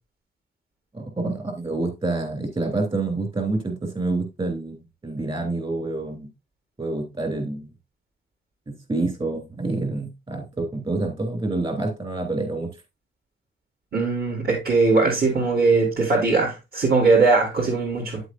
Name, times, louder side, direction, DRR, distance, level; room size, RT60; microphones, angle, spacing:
voice 1, 0.9-6.3 6.8-7.7 8.9-12.7, right 2 dB, 25° right, 3.1 m, -27 dB
voice 2, 13.9-18.2, right 3 dB, 55° right, 4.0 m, -20 dB
9.4 x 7.9 x 2.5 m
wide cardioid pair, 160°, 19 cm